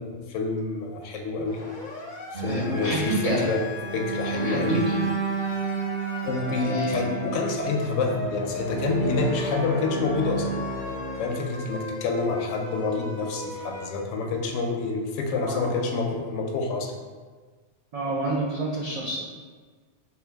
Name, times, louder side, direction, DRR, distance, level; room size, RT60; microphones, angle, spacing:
voice 1, 0.0-1.6 2.3-3.6 3.9-4.9 6.2-10.5 11.2-16.9 18.3-18.4, left 3 dB, 85° left, 2 dB, 0.9 m, -28 dB
Siren, 1.5-13.8, left 2 dB, 55° left, 0.6 m, -38 dB
sound 1, 2.3-11.6, right 4 dB, 40° right, 0.7 m, -32 dB
voice 2, 2.4-3.4 4.3-5.0 6.6-7.0 15.4-15.6 17.9-19.2, right 2 dB, 65° right, -5 dB, 0.3 m, -28 dB
4.4 x 2.3 x 3.4 m, 1.5 s
omnidirectional pair, 1.2 m